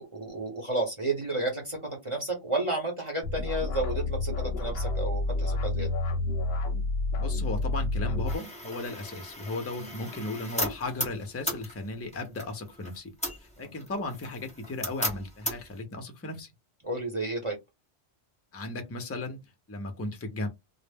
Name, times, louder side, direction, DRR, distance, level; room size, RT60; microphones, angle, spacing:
voice 1, 0.0-5.9 9.8-9.9 13.6-13.7 16.8-17.6, right 2 dB, 30° right, 0.8 m, -32 dB
sound 1, 3.2-8.4, left 2 dB, 65° left, 0.7 m, -29 dB
voice 2, 7.2-13.1 13.4-16.5 18.5-19.4 19.7-20.5, left 2 dB, 25° left, 0.3 m, -36 dB
sound 2, 8.3-15.8, equal, 5° left, 0.7 m, -37 dB
2.0 x 2.0 x 3.3 m
omnidirectional pair, 1.2 m